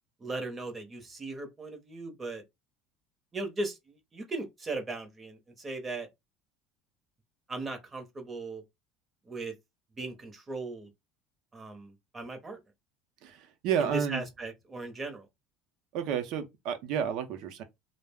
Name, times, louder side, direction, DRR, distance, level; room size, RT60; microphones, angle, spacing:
voice 1, 0.2-2.4 3.3-6.1 7.5-8.6 9.3-9.5 10.0-10.9 11.5-12.6 13.8-15.3, right 2 dB, 20° right, 0.7 m, -38 dB
voice 2, 13.2-14.2 15.9-17.6, right 8 dB, 65° right, 0.6 m, -31 dB
2.3 x 2.0 x 3.4 m
cardioid pair, 130°, 0 cm